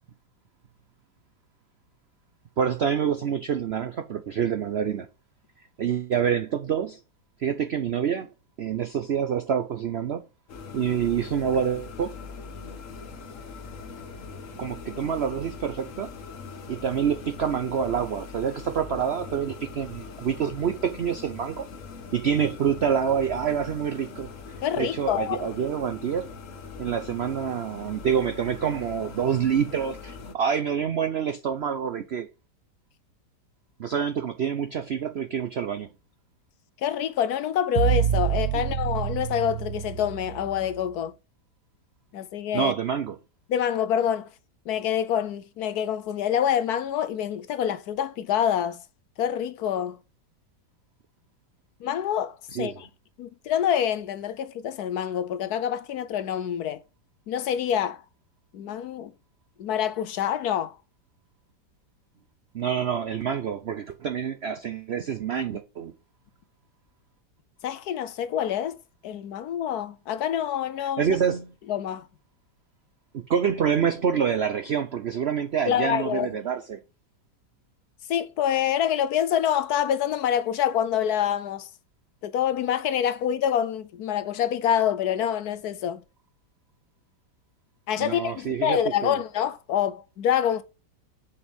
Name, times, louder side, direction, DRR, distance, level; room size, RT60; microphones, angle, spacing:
voice 1, 2.6-5.1 5.8-7.0 7.4-8.3 8.6-10.2 10.7-12.1 14.6-16.1 16.7-21.7 22.1-24.3 24.8-26.3 26.8-32.3 33.8-35.9 38.5-38.6 42.5-43.2 52.5-52.8 62.5-65.9 70.8-71.5 73.1-76.8 88.0-89.2, right 7 dB, 80° right, 0.5 m, -27 dB
sound 1, 10.5-30.3, left 4 dB, 50° left, 1.3 m, -41 dB
voice 2, 24.6-25.5 36.8-41.1 42.1-42.7 43.5-44.3 44.7-48.8 49.2-50.0 51.8-52.9 53.2-56.8 57.3-58.0 58.5-59.1 59.6-60.7 67.6-68.8 69.0-71.2 71.7-72.0 75.7-76.3 78.1-81.7 82.2-86.0 87.9-90.6, left 9 dB, 70° left, 1.1 m, -26 dB
sound 2, 37.8-40.8, right 11 dB, 65° right, 1.2 m, -27 dB
6.6 x 5.4 x 5.3 m
omnidirectional pair, 1.9 m